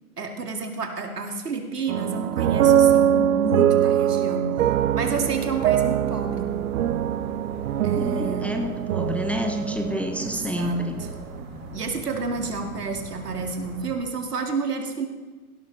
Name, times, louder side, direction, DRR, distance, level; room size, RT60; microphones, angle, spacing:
voice 1, 0.2-4.5 4.9-6.5 7.8-8.5 10.2-11.1 11.7-15.1, right 4 dB, 85° right, 3 dB, 2.1 m, -30 dB
sound 1, 1.9-11.2, right 10 dB, 60° right, 0.8 m, -23 dB
sound 2, 4.6-14.0, right 2 dB, 40° right, 4.9 m, -40 dB
voice 2, 7.9-11.0, equal, 5° left, 4 dB, 0.6 m, -29 dB
16.5 x 12.5 x 3.2 m, 1.3 s
hypercardioid pair, 110°, 46 cm